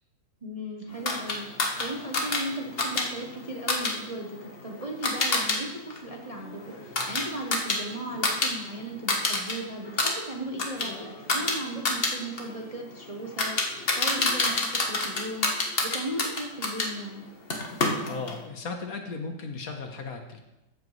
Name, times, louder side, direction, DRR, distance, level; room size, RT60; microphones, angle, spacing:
voice 1, 0.4-17.2, right 1 dB, 30° right, 0 dB, 0.8 m, -37 dB
sound 1, 1.0-5.6 5.9-8.5 8.8-9.5 9.8-16.9 17.5-18.4, left 3 dB, 40° left, 1.3 m, -28 dB
voice 2, 18.1-20.4, left 4 dB, 65° left, 5 dB, 1.5 m, -36 dB
14.0 x 7.6 x 3.2 m, 0.95 s
omnidirectional pair, 1.7 m